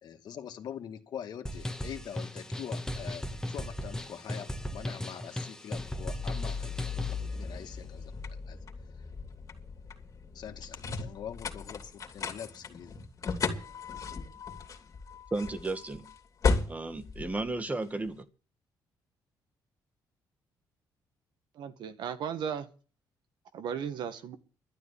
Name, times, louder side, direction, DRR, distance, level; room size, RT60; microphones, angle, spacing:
voice 1, 0.0-8.6 10.3-13.0 13.4-13.5, left 9 dB, 65° left, 2.2 m, -44 dB
sound 1, 1.5-7.3, left 1 dB, 10° left, 1.5 m, -37 dB
sound 2, 5.7-18.1, left 4 dB, 45° left, 2.9 m, -36 dB
voice 2, 15.3-16.1 16.7-18.3, right 2 dB, 20° right, 1.8 m, -34 dB
voice 3, 21.6-22.7 23.5-24.4, right 8 dB, 75° right, 1.7 m, -35 dB
12.0 x 9.8 x 8.5 m
cardioid pair, 95°, 8 cm